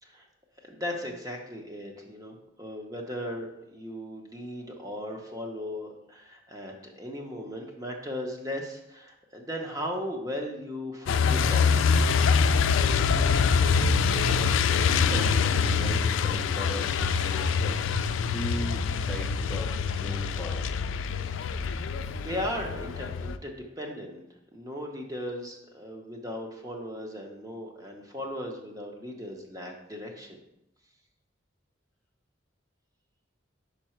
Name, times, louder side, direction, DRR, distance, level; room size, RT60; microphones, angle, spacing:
voice 1, 0.6-11.9 21.7-24.2 24.5-30.4, left 1 dB, 20° right, 1 dB, 0.9 m, -37 dB
Truck, 11.1-23.4, left 5 dB, 80° left, 0.4 m, -25 dB
voice 2, 13.8-18.0 18.3-20.7, equal, 5° left, -3 dB, 0.6 m, -39 dB
5.6 x 5.2 x 4.4 m, 0.83 s
head